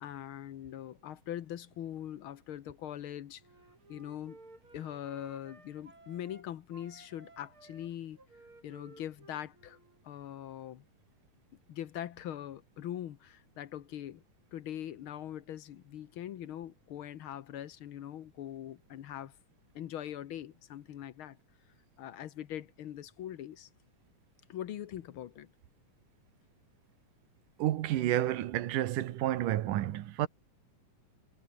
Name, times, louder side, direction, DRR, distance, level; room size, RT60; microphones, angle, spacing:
voice 1, 0.0-3.4 3.9-4.4 4.7-8.2 8.6-9.8 10.0-10.8 11.7-14.2 14.5-19.3 19.7-21.4 22.0-23.7 24.5-25.5, left 11 dB, 75° left, 1.2 m, -42 dB
Wind instrument woodwind instrument, 3.4-6.4 6.7-10.0, right 2 dB, 35° right, 8.2 m, -56 dB
voice 2, 27.6-30.3, right 13 dB, 75° right, 2.7 m, -30 dB
omnidirectional pair, 3.8 m